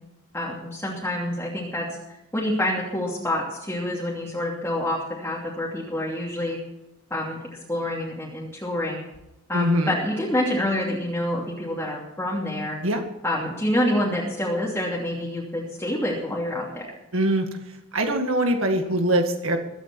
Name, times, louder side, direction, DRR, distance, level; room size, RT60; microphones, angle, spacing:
voice 1, 0.3-1.9 2.3-6.6 7.1-7.4 7.7-9.0 9.5-12.8 13.2-16.9, left 1 dB, 10° left, -4 dB, 2.7 m, -27 dB
voice 2, 9.5-9.9 12.8-13.0 17.1-17.5 17.9-19.6, right 1 dB, 65° right, 4 dB, 2.0 m, -22 dB
22.0 x 9.0 x 4.5 m, 0.92 s
head